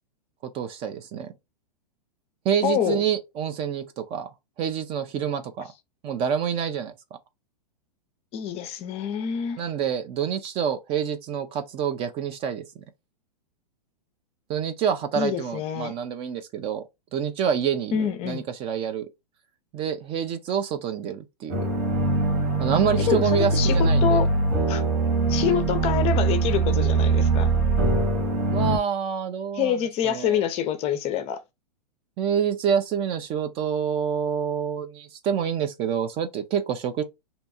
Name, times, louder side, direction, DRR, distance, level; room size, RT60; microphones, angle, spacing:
voice 1, 0.5-1.3 2.4-4.3 4.6-5.7 6.0-6.9 9.6-12.6 14.5-16.8 17.1-19.1 19.7-21.7 22.6-24.2 28.5-30.4 32.2-37.0, right 8 dB, 25° right, 0.4 m, -27 dB
voice 2, 2.6-3.0 8.3-9.6 15.1-15.9 17.9-18.4 23.0-24.3 24.7-24.8 25.3-27.6 29.5-31.4, left 9 dB, 30° left, 0.5 m, -26 dB
sound 1, 21.5-28.8, right 3 dB, 55° right, 1.5 m, -22 dB
2.7 x 2.2 x 4.1 m
hypercardioid pair, 110°, 21 cm